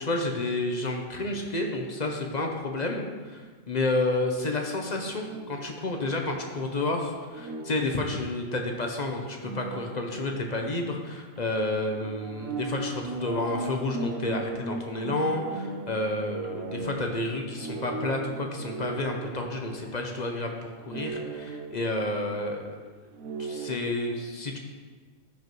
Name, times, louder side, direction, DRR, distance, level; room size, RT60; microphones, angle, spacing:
voice 1, 0.0-22.6 23.4-24.6, left 2 dB, 35° left, 2 dB, 0.8 m, -30 dB
sound 1, 5.2-6.2 7.3-8.6 9.3-11.1 11.4-11.5 12.0-20.5 20.8-22.4 23.1-23.8, right 3 dB, 75° right, 1.2 m, -38 dB
14.0 x 5.2 x 3.1 m, 1.4 s
omnidirectional pair, 1.5 m